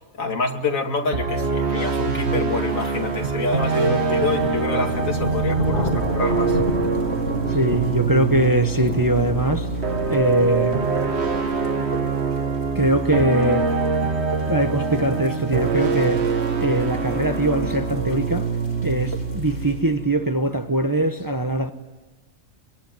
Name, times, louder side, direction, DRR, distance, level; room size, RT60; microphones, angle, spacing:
voice 1, 0.2-6.6, left 2 dB, 85° left, 2.6 m, -26 dB
sound 1, 1.1-20.3, right 4 dB, 55° right, 1.8 m, -24 dB
sound 2, 2.3-19.9, left 2 dB, 40° left, 2.4 m, -34 dB
voice 2, 7.5-9.7 10.1-10.8 12.7-13.6 14.5-16.2 16.6-18.5 18.8-21.7, right 1 dB, 20° right, 0.9 m, -22 dB
24.0 x 23.0 x 9.4 m
omnidirectional pair, 1.4 m